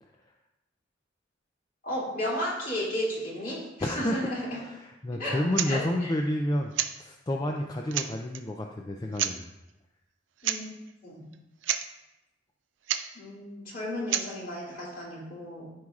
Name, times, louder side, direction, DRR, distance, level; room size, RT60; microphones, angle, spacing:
voice 1, 1.8-4.6 5.1-6.1 10.4-10.7 11.0-11.3 13.1-15.7, equal, 50° left, -6 dB, 2.7 m, -34 dB
voice 2, 3.8-6.7 7.0-9.5, left 1 dB, 20° left, 2 dB, 0.4 m, -30 dB
sound 1, 5.5-5.7 6.7-7.0 7.6-7.7 7.9-8.4 9.1-9.4 10.4-10.6 10.9-11.0 11.3-11.4 11.6-11.9 12.9-13.1 14.1-14.3, right 10 dB, 85° right, 0.5 m, -29 dB
13.5 x 4.7 x 2.4 m, 0.96 s
head